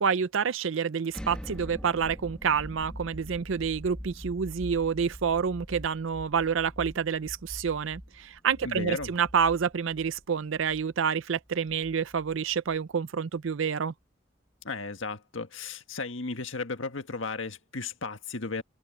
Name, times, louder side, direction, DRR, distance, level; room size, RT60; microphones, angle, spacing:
voice 1, 0.0-13.9, right 6 dB, 75° right, 0.5 m, -28 dB
sound 1, 1.1-12.9, equal, 5° left, 1.6 m, -44 dB
voice 2, 8.6-9.1 14.6-18.6, left 3 dB, 75° left, 1.6 m, -35 dB
head